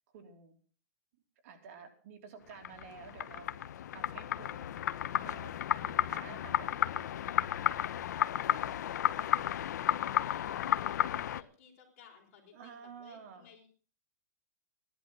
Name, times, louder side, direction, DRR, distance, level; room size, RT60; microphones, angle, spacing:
voice 1, 0.1-0.6 1.4-3.6 3.9-4.7 5.2-7.8 8.5-8.9 12.5-13.5, right 6 dB, 50° right, 4 dB, 3.1 m, -52 dB
sound 1, 2.5-11.4, left 11 dB, 80° left, 0.8 m, -33 dB
voice 2, 10.3-10.6 10.9-11.0 11.4-13.7, left 7 dB, 45° left, 2 dB, 5.2 m, -59 dB
16.0 x 11.0 x 6.2 m, 0.40 s
supercardioid pair, 175°, 9 cm